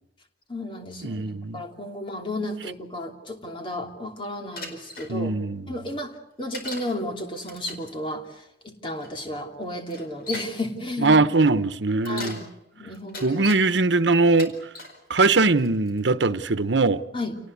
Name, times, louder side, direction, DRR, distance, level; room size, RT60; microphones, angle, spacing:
voice 1, 0.5-1.2 1.5-5.3 5.7-11.2 12.1-12.5 12.7-13.5 17.1-17.4, left 1 dB, 30° left, 3.0 m, -33 dB
voice 2, 1.0-1.6 5.1-5.7 11.0-12.4 13.2-14.5 15.1-17.0, right 3 dB, 90° right, 1.0 m, -21 dB
Bicycle, 4.6-5.1 6.5-6.9 7.4-7.9 9.0-9.1 9.9-10.6 11.9-12.5 12.9-13.6 14.2-15.0 15.6-16.0, left 2 dB, 55° left, 4.6 m, -38 dB
28.5 x 19.0 x 8.3 m
head